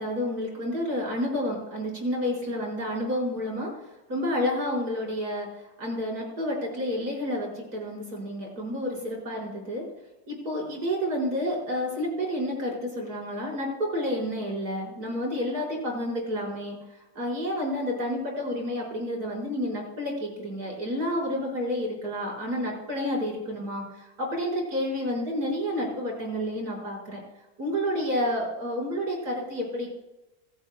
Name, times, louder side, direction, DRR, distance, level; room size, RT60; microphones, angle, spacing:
voice 1, 0.0-3.7 4.1-5.5 5.8-9.8 10.3-16.8 17.2-27.2 27.6-29.9, equal, 90° right, -2 dB, 5.5 m, -30 dB
26.5 x 13.0 x 2.2 m, 1.0 s
omnidirectional pair, 1.6 m